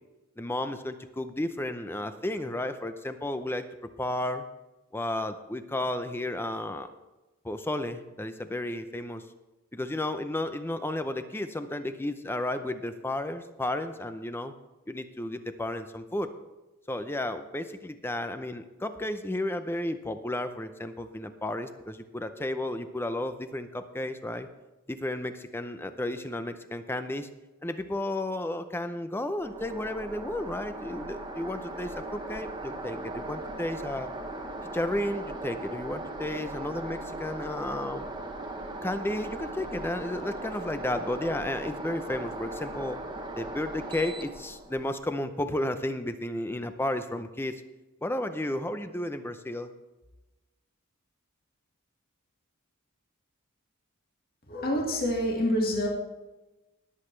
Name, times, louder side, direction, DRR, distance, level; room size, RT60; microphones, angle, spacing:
voice 1, 0.4-3.7 4.0-4.4 4.9-6.9 7.4-9.2 9.7-14.5 14.9-16.3 16.9-24.5 24.9-27.3 27.6-34.1 34.7-38.1 38.8-43.0 43.3-47.6 48.0-49.7, left 1 dB, 10° left, 9 dB, 0.6 m, -33 dB
sound 1, 29.4-44.9, right 2 dB, 20° right, 1.1 m, -38 dB
voice 2, 54.5-55.9, equal, 45° left, -2 dB, 2.1 m, -27 dB
19.5 x 8.0 x 3.3 m, 1.1 s
head